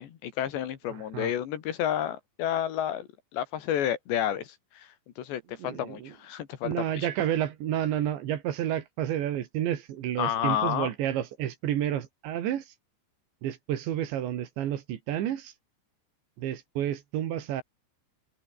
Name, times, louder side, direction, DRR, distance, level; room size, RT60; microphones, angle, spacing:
voice 1, 0.0-4.9 5.2-7.1 10.2-10.9, left 10 dB, 70° left, 4.1 m, -30 dB
voice 2, 0.9-1.3 5.6-6.2 6.6-12.7 13.4-15.5 16.4-17.6, right 11 dB, 70° right, 4.2 m, -30 dB
open air
omnidirectional pair, 5.5 m